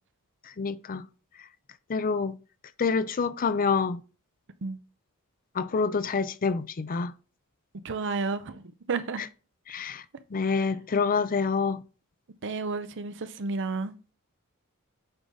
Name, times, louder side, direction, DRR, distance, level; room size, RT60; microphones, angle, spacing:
voice 1, 0.6-1.0 1.9-2.4 2.8-4.0 5.5-7.1 9.7-10.0 10.3-11.8, left 5 dB, 40° left, 0.5 m, -27 dB
voice 2, 7.8-9.3 12.4-13.9, right 4 dB, 55° right, 0.6 m, -31 dB
8.0 x 3.9 x 3.9 m
head